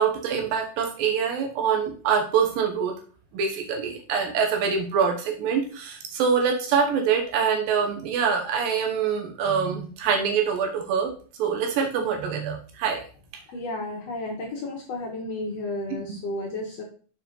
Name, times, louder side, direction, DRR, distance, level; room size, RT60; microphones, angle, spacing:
voice 1, 0.0-2.9 3.3-11.1 11.4-13.0, right 6 dB, 80° right, 3 dB, 2.6 m, -25 dB
voice 2, 13.5-16.8, left 2 dB, 65° left, 0 dB, 1.7 m, -32 dB
6.7 x 4.7 x 3.8 m, 0.41 s
omnidirectional pair, 4.0 m